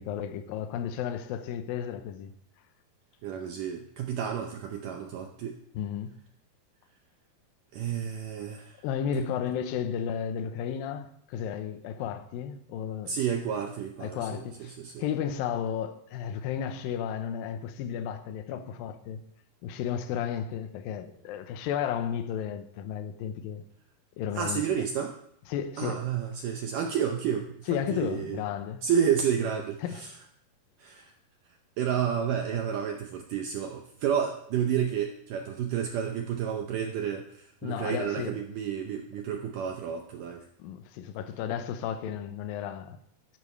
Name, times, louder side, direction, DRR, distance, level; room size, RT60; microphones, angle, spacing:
voice 1, 0.0-2.3 5.7-6.2 8.8-13.2 14.0-19.2 19.6-23.6 24.2-24.6 25.5-26.1 27.7-28.9 29.8-30.1 37.6-38.4 40.6-43.0, left 8 dB, 75° left, 2.4 m, -33 dB
voice 2, 3.2-5.5 7.7-8.8 9.2-9.3 13.1-15.0 24.4-25.2 25.8-28.4 28.8-30.1 30.8-31.1 31.8-40.4, right 8 dB, 75° right, 2.0 m, -30 dB
12.5 x 12.0 x 3.3 m
omnidirectional pair, 4.7 m